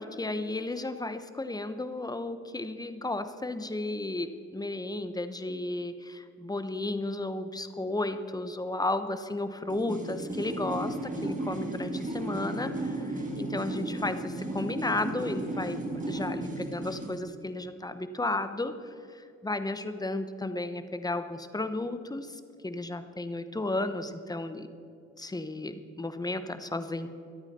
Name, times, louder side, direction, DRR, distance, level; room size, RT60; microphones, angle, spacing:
voice 1, 0.0-15.8 16.1-24.7 25.2-27.1, left 2 dB, 15° left, 10 dB, 1.0 m, -33 dB
sound 1, 9.7-17.2, right 1 dB, 25° right, 2.4 m, -34 dB
23.0 x 8.9 x 4.3 m, 2.5 s
cardioid pair, 90°, 30 cm